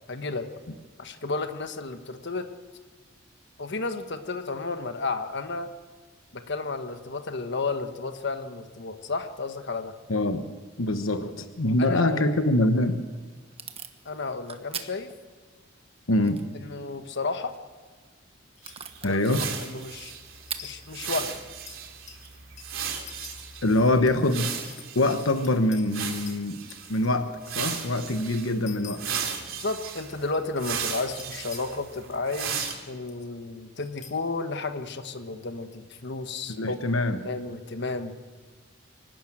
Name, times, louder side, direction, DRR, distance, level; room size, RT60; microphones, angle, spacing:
voice 1, 0.1-0.5 1.0-2.5 3.6-5.7 6.3-9.9 11.8-12.2 14.0-15.1 16.5-17.6 19.1-19.2 19.6-20.1 20.6-21.3 29.6-36.8 37.2-38.1, left 3 dB, 60° left, 7 dB, 1.3 m, -32 dB
voice 2, 10.1-10.5 10.8-13.0 16.1-16.4 19.0-19.5 23.6-24.5 24.9-26.6 26.9-29.1 36.5-37.2, left 1 dB, 85° left, 8 dB, 1.2 m, -24 dB
Packing tape duct tape / Tearing, 12.7-23.5, right 7 dB, 30° right, 1.2 m, -46 dB
sound 1, 18.6-18.8 19.9-20.7 21.0-21.1 21.7-25.9 26.3-27.9 28.7-29.1 30.2-30.7 31.1-31.8 32.7-32.8 33.1-33.3 33.8-34.1, left 8 dB, 35° left, 2.1 m, -47 dB
sound 2, 18.6-25.5 25.9-27.0 27.4-28.5 28.9-32.7, right 7 dB, 90° right, 3.2 m, -36 dB
25.0 x 12.0 x 9.0 m, 1.5 s
head